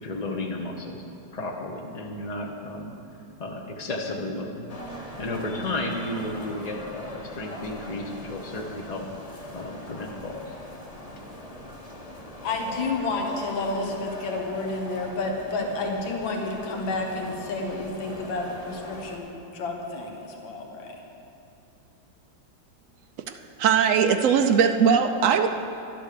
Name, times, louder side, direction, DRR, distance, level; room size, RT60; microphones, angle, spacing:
voice 1, 0.0-1.0 1.3-2.9 3.4-4.8 5.2-9.1 9.5-10.4, left 2 dB, 40° left, 0 dB, 0.5 m, -33 dB
sound 1, 4.7-19.2, left 1 dB, 25° left, 1.1 m, -41 dB
voice 2, 12.4-21.0, left 3 dB, 80° left, 2 dB, 2.1 m, -30 dB
voice 3, 23.3-25.5, right 7 dB, 85° right, 6 dB, 0.7 m, -20 dB
12.0 x 11.5 x 6.8 m, 2.8 s
omnidirectional pair, 2.1 m